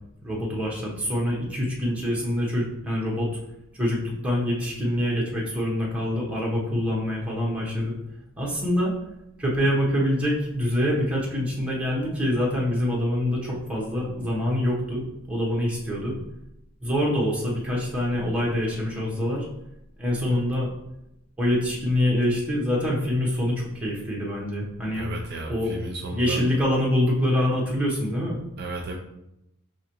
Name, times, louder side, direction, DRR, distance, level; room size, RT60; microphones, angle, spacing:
voice 1, 0.2-3.3 3.7-8.0 8.4-8.9 9.4-16.2 16.8-19.5 20.0-20.7 21.4-25.1 25.5-25.7 26.1-28.4, left 1 dB, 5° right, -4 dB, 0.9 m, -25 dB
voice 2, 24.9-26.4 28.6-29.0, right 3 dB, 50° right, 1 dB, 0.5 m, -34 dB
4.8 x 2.9 x 2.9 m, 0.85 s
head